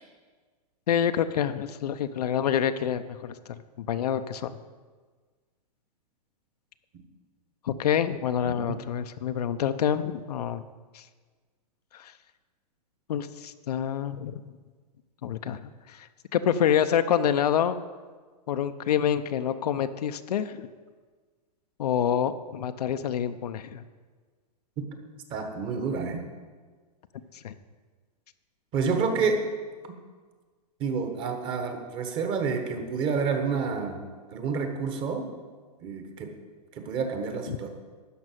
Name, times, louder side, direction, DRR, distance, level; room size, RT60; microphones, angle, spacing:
voice 1, 0.9-3.4 3.8-4.5 7.6-10.6 10.9-11.0 11.9-12.1 13.1-14.4 15.2-15.6 15.9-16.1 16.3-17.8 18.5-20.7 21.8-23.8 27.4-27.5 37.5-37.6, left 9 dB, 65° left, 10 dB, 0.7 m, -27 dB
voice 2, 25.3-26.3 28.7-29.4 30.8-34.0 34.3-35.3 35.8-36.3 36.7-37.7, right 5 dB, 25° right, 6 dB, 1.3 m, -29 dB
12.5 x 5.4 x 9.1 m, 1.5 s
hypercardioid pair, 155°, 21 cm